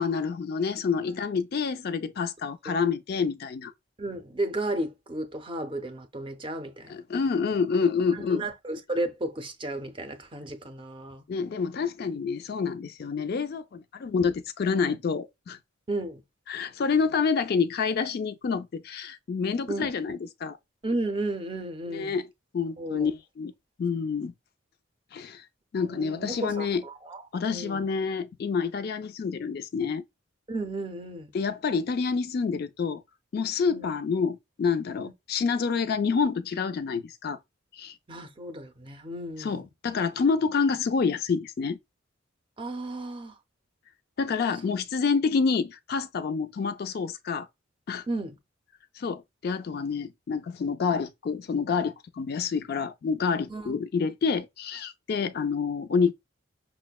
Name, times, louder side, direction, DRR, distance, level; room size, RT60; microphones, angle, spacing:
voice 1, 0.0-3.7 6.9-8.5 11.3-15.6 16.5-20.6 21.9-22.3 22.5-23.5 23.8-24.3 25.1-25.4 25.7-26.8 27.3-30.0 31.3-33.0 33.3-37.4 37.7-38.0 39.4-41.8 44.2-47.5 47.9-48.0 49.0-56.1, left 5 dB, 50° left, 0.3 m, -28 dB
voice 2, 4.0-7.0 8.1-11.2 14.0-14.1 15.9-16.2 19.7-19.9 20.8-22.2 22.8-23.1 25.8-27.2 27.5-27.9 30.5-31.3 33.7-33.9 35.0-35.1 38.1-39.6 42.6-43.4 48.1-48.4 53.5-53.7, right 2 dB, 25° right, 0.5 m, -33 dB
5.8 x 2.1 x 2.3 m
head